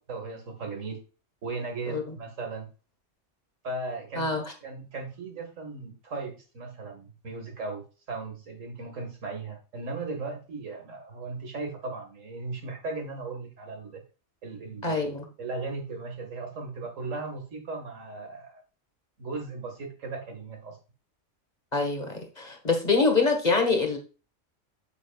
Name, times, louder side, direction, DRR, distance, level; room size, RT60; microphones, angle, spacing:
voice 1, 0.1-1.0 1.4-2.7 3.6-14.0 14.4-15.1 15.4-18.6 19.2-20.8, right 3 dB, 80° right, 3 dB, 2.2 m, -37 dB
voice 2, 14.8-15.3 21.7-24.0, left 4 dB, 35° left, 3 dB, 1.7 m, -25 dB
8.1 x 7.8 x 2.4 m, 0.33 s
omnidirectional pair, 1.3 m